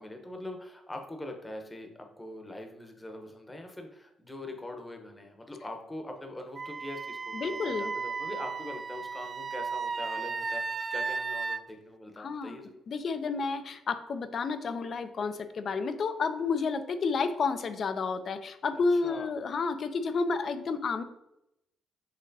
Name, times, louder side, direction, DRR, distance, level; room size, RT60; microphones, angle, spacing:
voice 1, 0.0-12.8 18.7-19.3, left 1 dB, 15° left, 4 dB, 0.9 m, -43 dB
Wind instrument woodwind instrument, 6.5-11.6, right 4 dB, 35° right, 0.3 m, -35 dB
voice 2, 7.3-7.9 12.2-12.6 12.9-21.0, left 4 dB, 50° left, 11 dB, 0.5 m, -31 dB
6.6 x 3.0 x 2.7 m, 0.85 s
cardioid pair, 90°, 0 cm